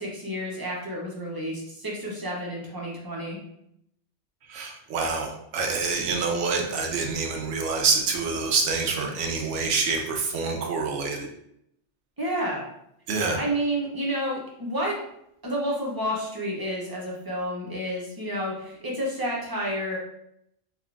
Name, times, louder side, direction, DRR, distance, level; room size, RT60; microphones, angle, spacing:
voice 1, 0.0-3.4 12.2-12.6 13.3-15.0 15.4-20.0, equal, 30° right, -3 dB, 0.5 m, -30 dB
voice 2, 4.5-11.3 13.1-13.4, right 4 dB, 85° right, 2 dB, 0.9 m, -26 dB
3.5 x 2.2 x 2.3 m, 0.76 s
omnidirectional pair, 1.2 m